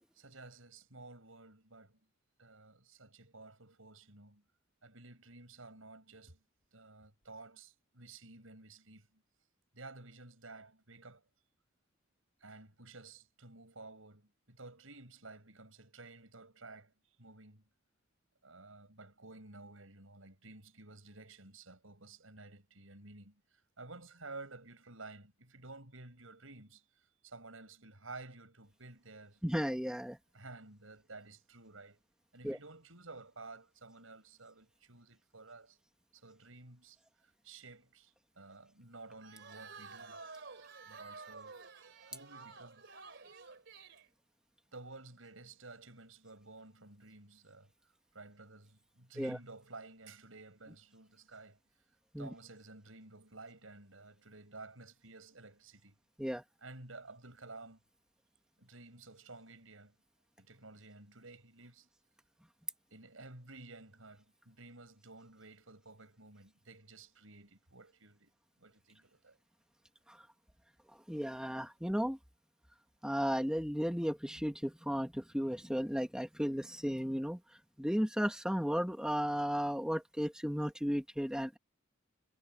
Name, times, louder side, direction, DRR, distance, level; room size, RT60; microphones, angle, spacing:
voice 1, 0.1-2.0 2.4-4.4 4.8-6.4 6.7-9.2 9.7-11.2 12.4-17.6 18.4-29.4 30.3-32.0 32.3-35.8 36.1-40.2 40.8-41.6 42.1-42.8 44.7-47.7 48.1-51.6 52.2-56.0 56.6-57.8 58.6-59.9 60.4-61.9 62.9-68.3 68.6-69.4, right 3 dB, 90° right, 6.0 m, -53 dB
voice 2, 29.4-30.2 32.4-32.6 49.2-49.4 52.1-52.3 56.2-56.4 70.1-70.2 71.1-72.2 73.0-77.4 77.8-81.6, equal, 5° right, 2.1 m, -34 dB
sound 1, 39.2-44.1, right 4 dB, 65° right, 3.3 m, -51 dB
head